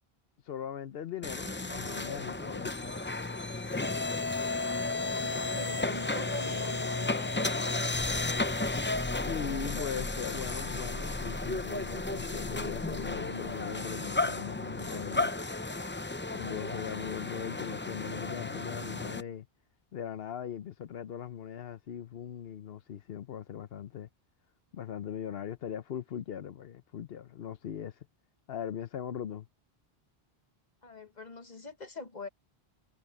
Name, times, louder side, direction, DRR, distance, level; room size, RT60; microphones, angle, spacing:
voice 1, 0.4-2.9 9.0-15.3 16.3-19.5 19.9-24.1 24.7-28.1 28.5-29.5, left 8 dB, 70° left, 0.9 m, -39 dB
sound 1, 1.2-19.2, left 2 dB, 15° left, 0.5 m, -33 dB
voice 2, 4.7-7.9 30.8-32.3, left 3 dB, 45° left, 1.3 m, -45 dB
omnidirectional pair, 1.1 m